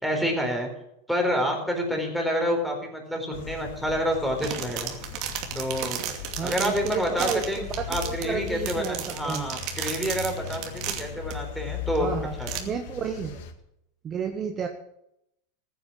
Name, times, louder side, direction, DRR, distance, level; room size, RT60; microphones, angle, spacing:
voice 1, 0.0-0.7 1.1-4.9 5.5-6.0 6.4-7.6 7.9-12.5, equal, ahead, 1 dB, 4.3 m, -28 dB
sound 1, 3.3-13.5, left 9 dB, 70° left, 1.9 m, -38 dB
sound 2, 4.1-11.3 12.0-12.1 12.4-12.6, right 9 dB, 50° right, 2.5 m, -34 dB
voice 2, 6.4-9.5 12.0-13.4 14.0-14.7, right 6 dB, 30° right, 5 dB, 1.3 m, -32 dB
15.0 x 9.5 x 7.6 m, 0.81 s
supercardioid pair, 125°, 0 cm